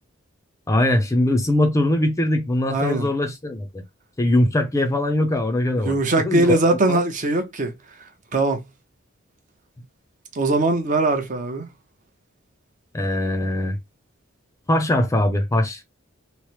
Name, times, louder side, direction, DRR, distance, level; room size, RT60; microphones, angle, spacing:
voice 1, 0.7-3.8 4.2-6.0 6.2-7.0 12.9-13.8 14.7-15.8, left 1 dB, 15° left, 0.5 m, -21 dB
voice 2, 2.7-3.1 5.8-7.7 8.3-8.6 10.3-11.7, right 2 dB, 40° right, 0.7 m, -21 dB
3.1 x 2.0 x 2.9 m
head